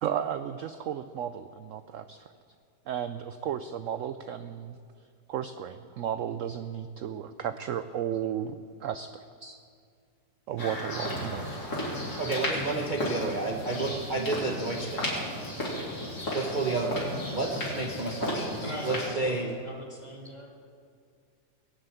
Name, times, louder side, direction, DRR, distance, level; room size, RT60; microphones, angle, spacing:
voice 1, 0.0-2.3 2.9-4.8 5.3-9.6 10.5-11.6, right 9 dB, 70° right, 11 dB, 0.7 m, -34 dB
sound 1, 10.6-19.1, left 1 dB, 65° left, 4.0 m, -34 dB
voice 2, 12.2-15.3 16.3-19.5, right 3 dB, 35° right, 0 dB, 1.0 m, -31 dB
voice 3, 18.6-20.5, equal, 25° left, -2 dB, 2.4 m, -40 dB
21.0 x 7.7 x 9.0 m, 2.2 s
omnidirectional pair, 1.8 m